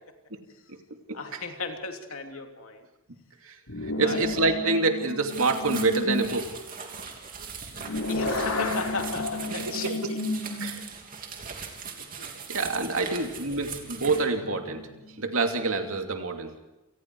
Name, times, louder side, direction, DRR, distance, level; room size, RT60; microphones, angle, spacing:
voice 1, 1.1-2.9 4.0-4.2 8.1-10.2 11.9-12.4, left 4 dB, 70° left, 4 dB, 3.0 m, -35 dB
sound 1, 3.7-6.3 7.3-11.0 11.5-11.6 13.4-15.9, left 2 dB, 90° left, 4.2 m, -33 dB
voice 2, 4.0-6.5 9.8-10.1 10.6-10.8 12.5-14.8 15.2-16.5, right 3 dB, 70° right, 4 dB, 2.6 m, -26 dB
sound 2, 5.3-14.2, right 6 dB, 40° right, 3.0 m, -40 dB
28.5 x 19.5 x 4.7 m, 0.96 s
head